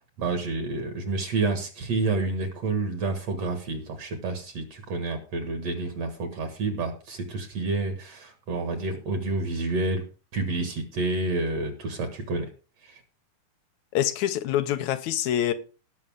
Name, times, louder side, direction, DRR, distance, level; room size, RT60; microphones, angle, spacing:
voice 1, 0.2-10.1 10.3-12.5 12.8-13.0, right 3 dB, 55° right, 2.6 m, -29 dB
voice 2, 13.9-15.5, left 11 dB, 75° left, 2.1 m, -25 dB
18.0 x 6.6 x 3.6 m
omnidirectional pair, 3.6 m